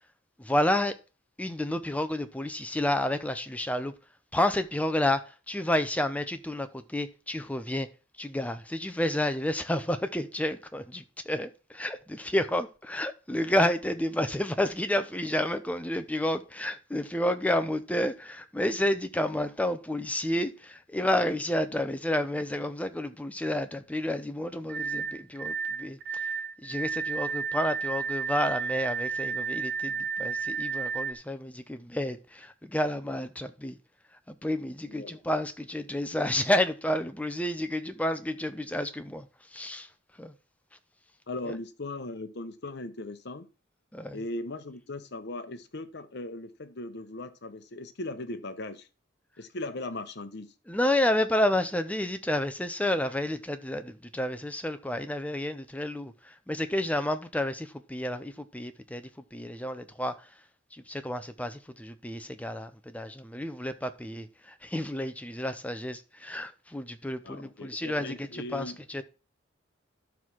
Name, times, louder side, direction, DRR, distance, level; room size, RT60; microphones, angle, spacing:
voice 1, 0.4-1.0 1.4-3.9 4.3-7.9 8.2-26.3 26.6-33.8 34.3-39.3 39.5-39.9 40.2-40.3 41.5-41.6 43.9-44.2 50.7-60.3 60.7-69.0, left 1 dB, 5° left, 0.8 m, -30 dB
sound 1, 24.7-31.1, right 6 dB, 50° right, 0.7 m, -32 dB
voice 2, 34.9-35.2 41.3-43.5 44.1-48.9 49.4-50.5 67.2-68.8, left 2 dB, 55° left, 1.0 m, -38 dB
12.0 x 4.8 x 5.9 m
head